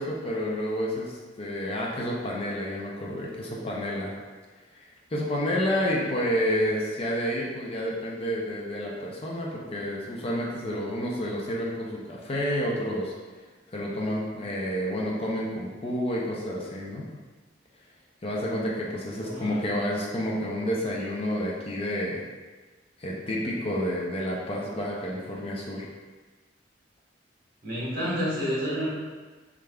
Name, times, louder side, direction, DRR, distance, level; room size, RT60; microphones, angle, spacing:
voice 1, 0.0-4.1 4.7-13.1 13.7-17.1 18.2-22.2 23.0-25.9, equal, 30° left, -3 dB, 0.5 m, -30 dB
voice 2, 19.2-19.6 27.6-28.9, equal, 50° right, -7 dB, 1.2 m, -29 dB
3.6 x 3.4 x 2.2 m, 1.3 s
head